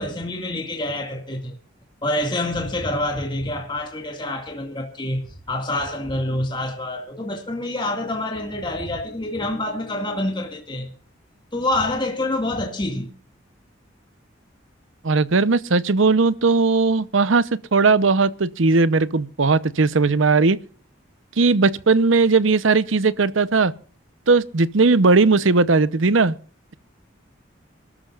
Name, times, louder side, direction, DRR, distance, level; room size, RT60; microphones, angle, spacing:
voice 1, 0.0-1.6 2.0-5.2 5.5-10.9 11.5-13.1, left 1 dB, 25° left, 2.1 m, -26 dB
voice 2, 15.0-17.4 17.7-20.6 21.4-23.7 24.3-26.3, right 4 dB, 85° right, 0.8 m, -18 dB
27.0 x 13.0 x 2.5 m
head